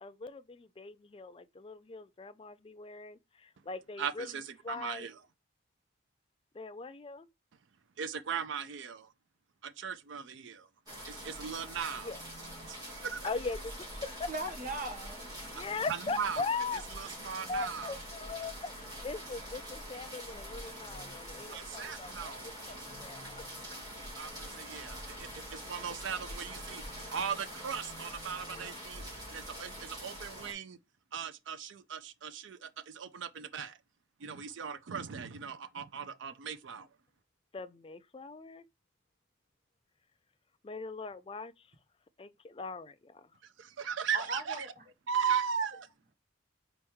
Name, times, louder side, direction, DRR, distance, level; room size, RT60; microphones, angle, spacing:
voice 1, 0.0-4.3 4.6-5.1 6.5-7.3 12.0-12.2 13.2-14.3 15.5-16.8 17.5-18.7 19.0-23.4 28.4-28.9 37.5-38.6 40.6-41.7 42.2-43.3, left 4 dB, 25° left, 0.3 m, -40 dB
voice 2, 4.0-5.2 8.0-9.1 9.6-10.7 11.0-12.1 12.7-13.3 15.9-16.4 17.0-17.9 21.5-22.5 24.2-29.0 29.3-30.8 31.1-33.8 34.2-36.9 43.6-44.7 45.1-45.9, right 7 dB, 65° right, 0.4 m, -38 dB
sound 1, 10.9-30.5, equal, 20° right, 1.9 m, -44 dB
voice 3, 14.3-15.3 44.1-44.8, right 2 dB, 40° right, 1.0 m, -38 dB
4.2 x 2.9 x 3.5 m
head